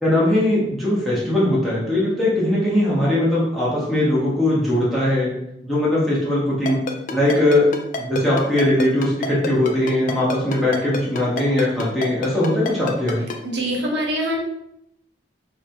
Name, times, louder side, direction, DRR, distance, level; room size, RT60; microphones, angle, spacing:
voice 1, 0.0-5.3 5.6-6.8 7.1-7.7 8.0-13.2, left 1 dB, ahead, -8 dB, 0.6 m, -20 dB
Ringtone, 6.7-13.3, left 4 dB, 45° left, 0.3 m, -27 dB
voice 2, 13.4-14.4, equal, 65° right, 0 dB, 0.6 m, -24 dB
2.4 x 2.1 x 2.6 m, 0.80 s
head